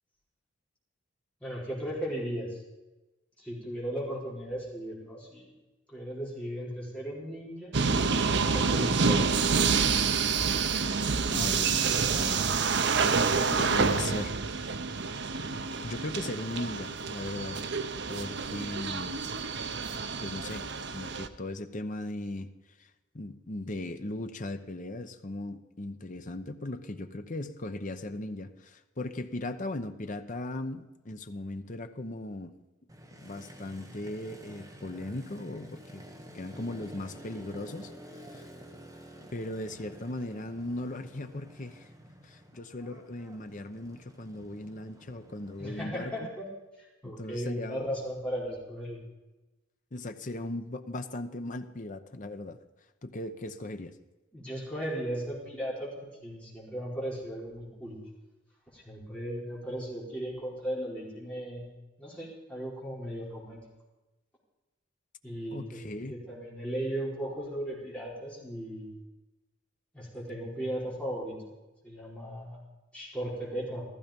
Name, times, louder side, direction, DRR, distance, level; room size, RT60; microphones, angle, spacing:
voice 1, 1.4-2.6 3.4-5.5 5.9-7.7 8.5-9.2 45.6-46.5 46.8-49.0 54.3-58.0 58.7-61.7 62.0-63.6 65.2-69.0 69.9-71.4 71.8-72.6 72.9-73.9, equal, 5° left, -5 dB, 4.8 m, -36 dB
sound 1, 7.7-21.3, right 5 dB, 65° right, 0.7 m, -28 dB
voice 2, 11.3-14.7 15.8-17.6 18.1-19.1 20.2-20.6 20.9-22.5 22.8-22.9 23.1-32.5 33.2-36.0 36.3-37.9 38.3-38.5 39.3-41.9 42.2-46.3 47.0-47.9 49.9-52.6 53.0-53.9 65.5-66.1, left 2 dB, 40° left, 8 dB, 0.9 m, -38 dB
Motorcycle, 32.9-45.9, equal, 20° right, 1.6 m, -50 dB
15.0 x 14.5 x 5.3 m, 1.1 s
head